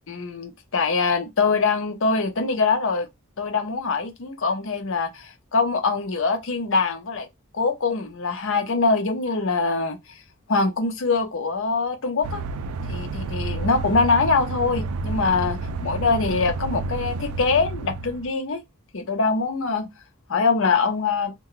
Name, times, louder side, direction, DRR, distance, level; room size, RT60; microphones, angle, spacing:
voice 1, 0.1-3.1 3.4-7.3 7.5-10.0 10.5-12.4 12.9-18.6 18.9-19.9 20.3-21.3, left 4 dB, 65° left, 0.7 m, -23 dB
sound 1, 12.2-18.3, right 3 dB, 90° right, 0.4 m, -30 dB
2.2 x 2.2 x 3.8 m
head